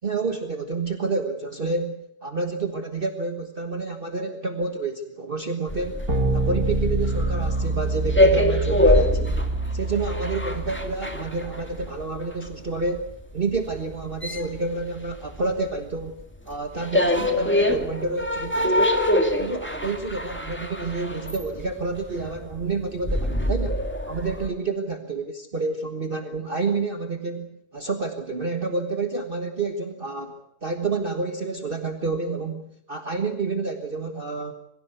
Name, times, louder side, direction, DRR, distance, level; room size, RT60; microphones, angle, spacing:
voice 1, 0.0-6.1 6.3-9.4 9.7-13.1 13.3-18.9 19.4-25.2 25.5-34.5, right 3 dB, 35° right, 5 dB, 1.6 m, -29 dB
sound 1, 5.7-15.7 16.0-24.5, left 1 dB, 5° left, 2.0 m, -25 dB
sound 2, 6.1-10.9, right 3 dB, 65° right, 3.7 m, -26 dB
23.5 x 16.0 x 8.3 m, 0.78 s
omnidirectional pair, 1.6 m